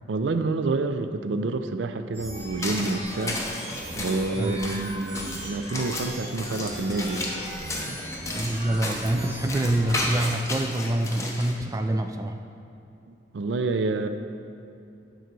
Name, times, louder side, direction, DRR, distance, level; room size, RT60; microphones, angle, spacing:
voice 1, 0.1-3.4 3.9-7.3 7.9-8.0 13.1-14.1, right 3 dB, 85° right, 9 dB, 0.4 m, -28 dB
sound 1, 2.1-10.3, equal, 35° right, 1.8 m, -38 dB
sound 2, 2.4-11.5, left 2 dB, 15° left, 0.8 m, -34 dB
voice 2, 8.3-12.4, right 1 dB, 20° right, 6 dB, 0.3 m, -26 dB
9.3 x 3.9 x 6.0 m, 2.6 s
head